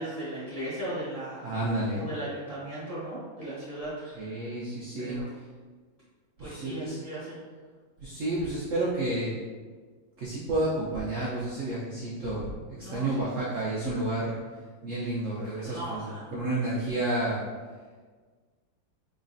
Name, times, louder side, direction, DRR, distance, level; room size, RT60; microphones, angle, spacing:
voice 1, 0.0-1.5 1.9-4.4 5.0-5.3 6.4-7.4 12.8-13.3 15.6-16.3, right 1 dB, 25° left, -11 dB, 1.0 m, -37 dB
voice 2, 1.4-2.0 4.0-5.2 6.4-7.0 8.0-9.3 10.2-12.5 12.8-14.3 14.8-17.4, right 2 dB, 75° right, -6 dB, 0.7 m, -30 dB
3.9 x 3.2 x 2.6 m, 1.5 s
omnidirectional pair, 2.1 m